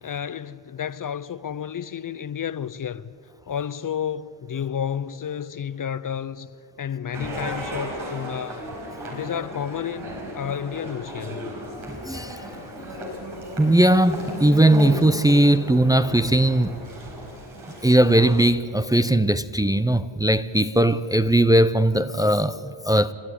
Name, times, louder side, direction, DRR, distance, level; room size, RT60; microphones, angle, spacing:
voice 1, 0.0-3.1 3.5-8.7 9.1-11.5, left 8 dB, 40° left, 0.6 m, -31 dB
sound 1, 7.1-18.4, equal, 80° right, 5.1 m, -35 dB
voice 2, 11.7-12.4 13.6-16.7 17.8-23.1, right 1 dB, 10° right, 0.5 m, -19 dB
29.5 x 11.5 x 9.8 m
cardioid pair, 85°, 49 cm